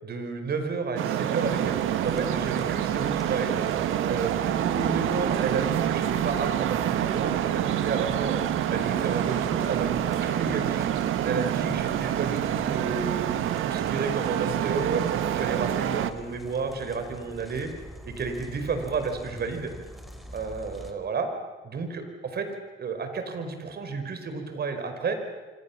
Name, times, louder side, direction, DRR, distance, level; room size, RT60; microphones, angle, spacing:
voice 1, 0.0-3.6 4.0-8.4 8.7-10.9 11.2-13.3 13.6-17.7 18.0-19.7 20.3-21.3 21.6-22.5 22.8-25.2, right 4 dB, 55° right, 7 dB, 5.0 m, -31 dB
Traffic noise roadway noise, 1.0-16.1, right 11 dB, 85° right, 1.4 m, -27 dB
sound 1, 1.4-20.9, equal, ahead, 4.5 m, -43 dB
27.0 x 26.0 x 7.3 m, 1.3 s
cardioid pair, 90°, 20 cm